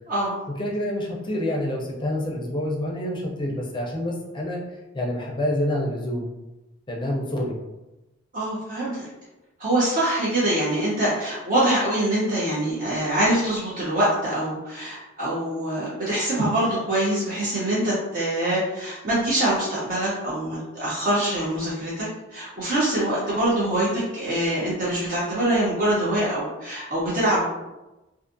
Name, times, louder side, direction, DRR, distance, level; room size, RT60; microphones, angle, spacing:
voice 1, 0.6-4.6 4.9-6.3 6.9-7.6, left 1 dB, 25° left, -2 dB, 0.5 m, -27 dB
voice 2, 8.3-9.1 9.6-27.5, right 1 dB, 45° right, -8 dB, 0.7 m, -24 dB
2.5 x 2.4 x 2.5 m, 1.0 s
head